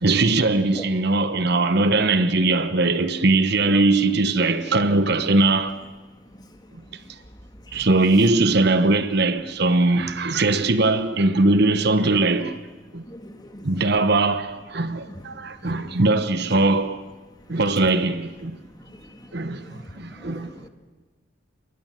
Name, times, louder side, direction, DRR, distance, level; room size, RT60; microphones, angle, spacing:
voice 1, 0.0-5.8 7.7-12.6 12.9-13.0 13.6-17.0 17.5-18.6 19.3-20.5, right 2 dB, 50° right, 1.1 m, -20 dB
voice 2, 13.1-13.6 15.6-15.7 19.6-19.8 20.2-20.7, left 1 dB, 20° left, 2.0 m, -40 dB
28.0 x 23.0 x 7.5 m
head